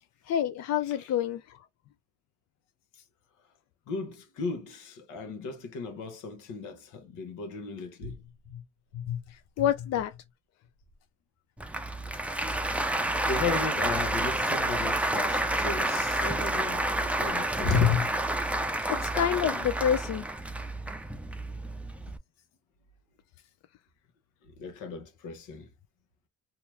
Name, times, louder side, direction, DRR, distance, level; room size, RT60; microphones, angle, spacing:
voice 1, 0.3-1.4 9.6-10.1 18.9-20.2, left 9 dB, 60° left, 0.4 m, -27 dB
voice 2, 3.9-8.2 8.5-8.6 8.9-9.2 9.6-9.9 13.3-18.1 24.6-25.7, left 5 dB, 85° left, 1.0 m, -33 dB
Applause, 11.6-22.2, right 1 dB, 5° right, 0.4 m, -29 dB
2.8 x 2.4 x 3.0 m
cardioid pair, 90°, 30 cm